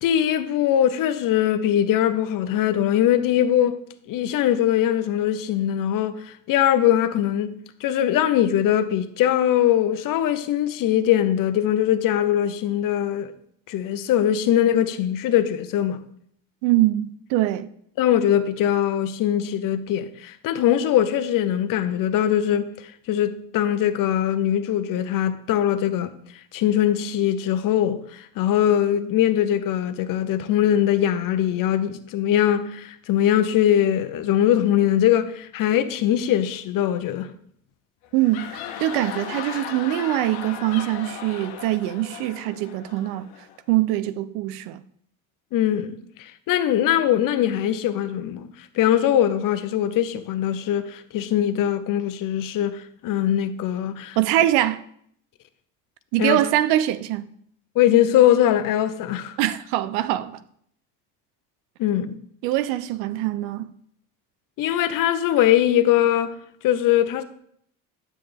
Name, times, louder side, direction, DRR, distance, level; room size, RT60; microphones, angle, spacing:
voice 1, 0.0-3.8 4.1-13.3 13.7-16.0 18.0-22.7 23.1-26.1 26.5-37.3 45.5-48.5 48.7-54.2 56.2-56.4 57.8-59.4 61.8-62.2 64.6-66.4 66.6-67.2, left 11 dB, 60° left, 0.9 m, -21 dB
voice 2, 16.6-17.7 38.1-38.5 38.8-43.3 43.7-44.8 54.2-54.8 56.1-57.3 59.4-60.4 62.4-63.7, right 14 dB, 80° right, 0.7 m, -23 dB
sound 1, 38.0-43.6, left 9 dB, 75° left, 1.2 m, -36 dB
9.3 x 7.5 x 3.4 m
supercardioid pair, 85°, 37 cm